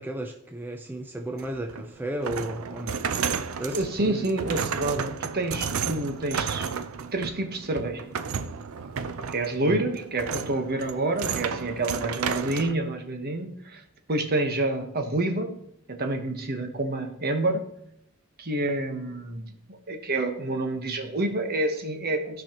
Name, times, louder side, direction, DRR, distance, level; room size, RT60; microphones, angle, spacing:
voice 1, 0.0-3.1 3.6-4.3 9.6-9.9, right 1 dB, 10° right, 4 dB, 0.5 m, -34 dB
sound 1, 1.4-12.7, right 6 dB, 75° right, 0.5 m, -32 dB
voice 2, 3.7-6.7 7.1-8.0 9.3-13.8 14.1-15.5 15.9-17.6 18.4-22.4, right 2 dB, 45° right, 5 dB, 1.1 m, -28 dB
15.0 x 5.6 x 2.9 m, 0.75 s
head